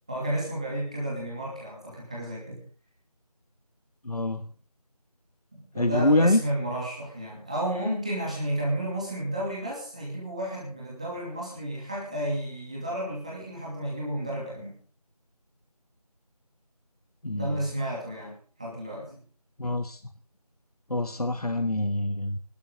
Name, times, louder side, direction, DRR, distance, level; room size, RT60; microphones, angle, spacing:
voice 1, 0.1-2.6 5.5-14.8 17.3-19.2, right 1 dB, 10° right, -5 dB, 2.7 m, -32 dB
voice 2, 4.0-4.4 5.7-6.4 17.2-17.6 19.6-20.0 20.9-22.4, left 1 dB, 70° left, 10 dB, 1.3 m, -25 dB
23.0 x 12.5 x 3.9 m, 0.41 s
figure-of-eight pair, 175°, 20 cm